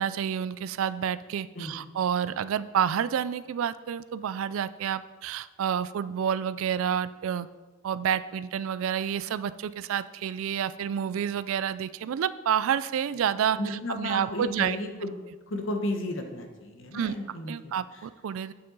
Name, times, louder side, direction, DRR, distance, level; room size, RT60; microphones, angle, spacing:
voice 1, 0.0-7.5 7.8-14.8 16.9-17.2 17.5-18.5, right 8 dB, 75° right, 15 dB, 0.3 m, -29 dB
voice 2, 13.6-15.1 15.5-17.7, left 1 dB, 65° left, 4 dB, 0.9 m, -33 dB
7.6 x 6.7 x 3.9 m, 1.3 s
head